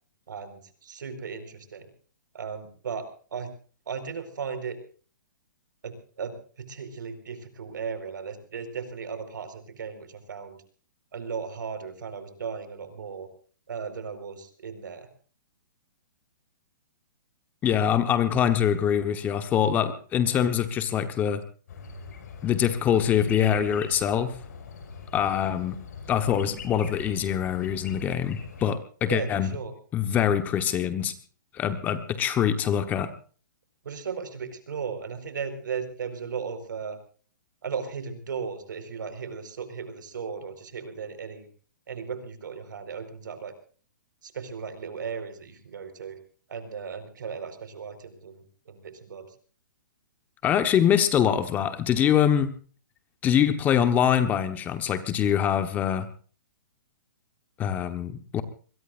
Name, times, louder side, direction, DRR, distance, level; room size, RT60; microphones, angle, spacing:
voice 1, 0.3-1.9 2.3-3.5 3.9-4.8 5.8-10.6 11.1-13.3 13.7-15.1 29.1-29.7 33.8-37.0 37.6-41.5 41.9-43.5 44.2-46.2 46.5-49.3, right 6 dB, 75° right, 10 dB, 4.7 m, -36 dB
voice 2, 17.6-21.4 22.4-24.3 25.1-25.8 26.1-29.5 29.9-31.1 31.5-33.1 50.4-52.5 53.2-56.1 57.6-58.4, left 9 dB, 15° left, 10 dB, 1.2 m, -24 dB
sound 1, 21.7-28.7, left 5 dB, 55° left, 5.5 m, -42 dB
24.0 x 22.0 x 2.6 m, 0.41 s
hypercardioid pair, 160°, 11 cm